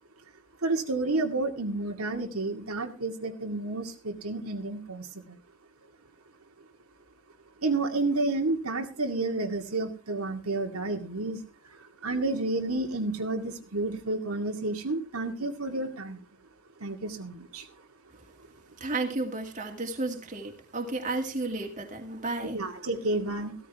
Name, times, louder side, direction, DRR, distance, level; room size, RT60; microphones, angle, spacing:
voice 1, 0.6-5.4 7.6-11.4 11.7-16.2 16.8-17.7 22.5-23.5, right 2 dB, 85° right, 3 dB, 2.2 m, -30 dB
voice 2, 18.8-22.6, right 2 dB, 35° right, 3 dB, 2.3 m, -32 dB
15.5 x 13.5 x 3.5 m, 0.31 s
head